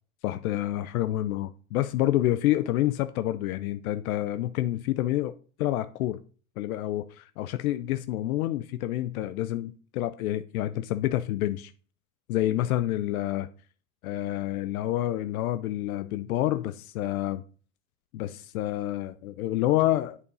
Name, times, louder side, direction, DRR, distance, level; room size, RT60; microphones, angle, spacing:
voice 1, 0.2-5.3 5.6-6.2 6.6-11.7 12.3-13.5 14.0-17.4 18.1-20.2, left 14 dB, 80° left, 0.8 m, -28 dB
8.7 x 7.1 x 5.4 m
supercardioid pair, 120°, 42 cm